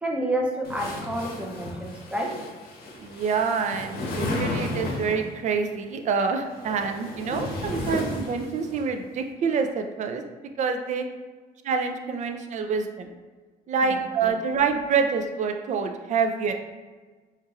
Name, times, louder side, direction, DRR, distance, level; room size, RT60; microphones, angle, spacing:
voice 1, 0.0-2.3 7.3-7.4 13.8-14.0 14.2-14.3, right 1 dB, 5° right, -1 dB, 0.7 m, -29 dB
sound 1, 0.6-5.3 6.3-8.8, left 2 dB, 65° left, 0.8 m, -33 dB
voice 2, 3.0-10.2 10.6-11.1 11.6-13.1 13.7-16.5, right 5 dB, 45° right, 5 dB, 0.4 m, -26 dB
4.4 x 2.9 x 2.4 m, 1.4 s
cardioid pair, 110°, 17 cm